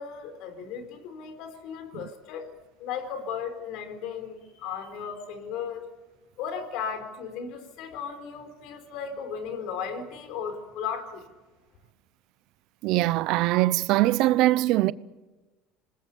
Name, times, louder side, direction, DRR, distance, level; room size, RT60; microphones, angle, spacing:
voice 1, 0.0-2.5 2.8-5.8 6.4-11.2, left 7 dB, 70° left, 4.2 m, -36 dB
voice 2, 12.8-14.9, right 17 dB, 70° right, 0.7 m, -22 dB
27.0 x 20.0 x 8.5 m
supercardioid pair, 115°, 0 cm